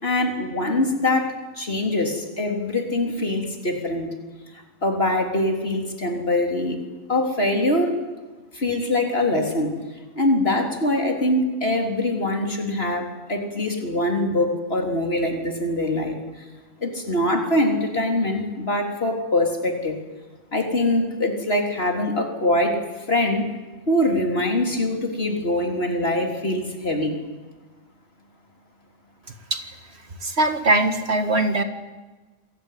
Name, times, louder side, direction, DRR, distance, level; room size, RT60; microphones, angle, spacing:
voice 1, 0.0-4.1 4.8-6.8 7.1-7.9 8.5-9.7 10.2-16.2 16.8-20.0 20.5-22.8 23.1-23.5 23.9-27.2, left 1 dB, 50° left, 3 dB, 4.0 m, -23 dB
voice 2, 30.2-31.6, right 2 dB, 50° right, 8 dB, 2.1 m, -21 dB
27.0 x 22.0 x 9.5 m, 1.2 s
omnidirectional pair, 1.4 m